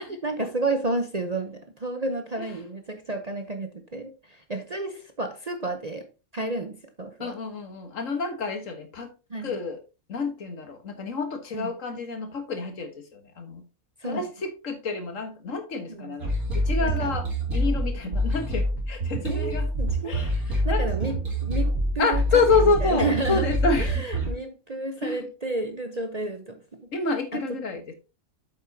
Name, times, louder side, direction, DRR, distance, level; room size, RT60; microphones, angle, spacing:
voice 1, 0.2-6.1 6.3-7.4 9.3-9.6 11.5-11.7 14.0-14.3 15.9-16.2 16.8-17.1 18.0-18.2 19.2-23.5 23.8-26.9 27.3-27.6, right 2 dB, 35° right, 0.7 m, -31 dB
voice 2, 7.2-9.1 9.4-9.8 10.1-13.6 14.0-19.7 20.0-20.9 22.0-24.0 25.0-25.3 26.9-27.9, left 4 dB, 65° left, 1.7 m, -28 dB
sound 1, 16.2-24.3, right 1 dB, 85° right, 3.6 m, -26 dB
8.7 x 7.7 x 2.7 m
omnidirectional pair, 1.5 m